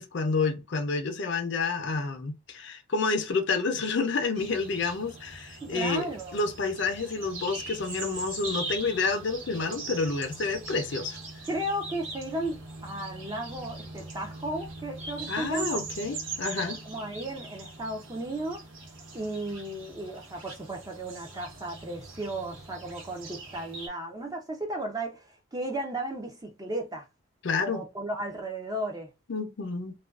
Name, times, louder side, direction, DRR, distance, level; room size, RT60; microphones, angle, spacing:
voice 1, 0.0-11.2 15.3-16.8 27.4-27.8 29.3-29.9, left 4 dB, 60° left, 0.5 m, -29 dB
sound 1, 4.3-23.9, right 3 dB, 70° right, 0.9 m, -41 dB
voice 2, 5.6-6.4 11.5-15.8 16.9-18.6 19.1-27.1 27.6-29.1, right 1 dB, 20° right, 0.4 m, -35 dB
2.4 x 2.2 x 2.3 m
head